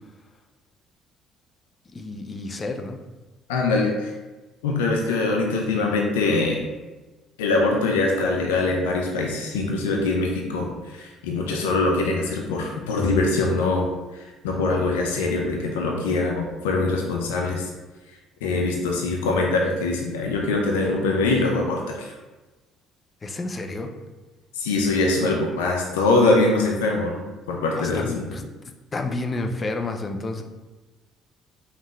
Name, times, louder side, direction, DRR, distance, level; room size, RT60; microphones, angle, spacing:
voice 1, 1.9-3.0 23.2-23.9 27.8-28.4 28.9-30.4, left 2 dB, 30° left, 5 dB, 0.6 m, -30 dB
voice 2, 3.5-4.1 4.6-6.6 7.4-17.7 18.4-22.1 24.6-27.2 27.5-28.4, left 3 dB, 80° left, 0 dB, 0.5 m, -23 dB
5.4 x 2.4 x 3.2 m, 1.2 s
hypercardioid pair, 50°, 0 cm